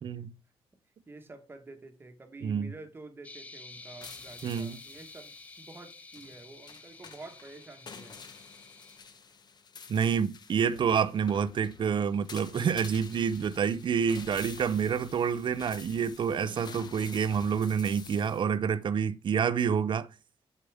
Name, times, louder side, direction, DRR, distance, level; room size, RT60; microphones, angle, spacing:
voice 1, 0.0-0.3 2.4-2.7 4.4-4.8 9.9-20.1, right 7 dB, 50° right, 0.6 m, -28 dB
voice 2, 1.1-8.2, right 3 dB, 20° right, 1.2 m, -49 dB
sound 1, 3.2-9.0, left 3 dB, 15° left, 0.6 m, -50 dB
sound 2, 3.7-18.4, left 5 dB, 45° left, 0.9 m, -49 dB
8.2 x 6.6 x 3.4 m
wide cardioid pair, 165°, 10 cm